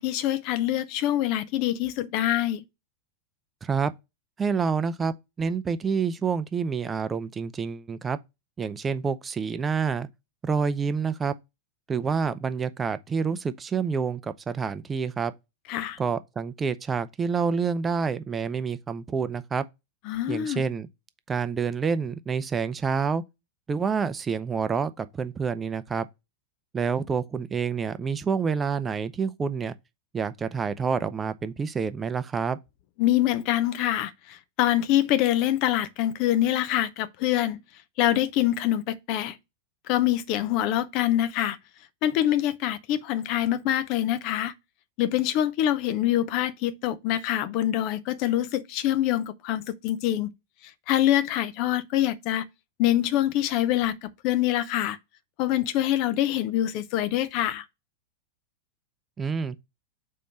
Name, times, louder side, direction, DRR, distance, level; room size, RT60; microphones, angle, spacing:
voice 1, 0.0-2.6 15.7-16.0 20.1-20.6 33.0-37.6 38.0-39.4 39.9-41.6 42.0-44.5 45.0-50.3 50.9-52.5 52.8-55.0 55.4-57.6, left 13 dB, 45° left, 0.6 m, -25 dB
voice 2, 3.6-3.9 4.4-8.2 8.6-10.1 10.4-11.3 11.9-15.3 16.0-19.6 20.3-20.9 21.3-23.2 23.7-26.1 26.7-29.7 30.1-32.6 59.2-59.6, right 5 dB, 20° right, 0.5 m, -28 dB
5.1 x 4.3 x 4.9 m
figure-of-eight pair, 90°, 0 cm